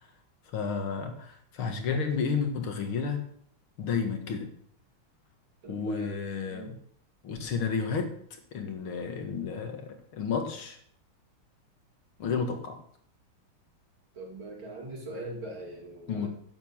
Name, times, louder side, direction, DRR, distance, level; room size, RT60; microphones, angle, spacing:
voice 1, 0.5-3.2 3.8-4.5 5.7-6.8 7.2-8.1 8.5-10.8 12.2-12.8 16.1-16.3, left 5 dB, 80° left, 5 dB, 2.5 m, -31 dB
voice 2, 5.6-6.7 14.1-16.3, right 2 dB, 70° right, -1 dB, 3.7 m, -41 dB
10.5 x 7.0 x 7.3 m, 0.65 s
omnidirectional pair, 2.3 m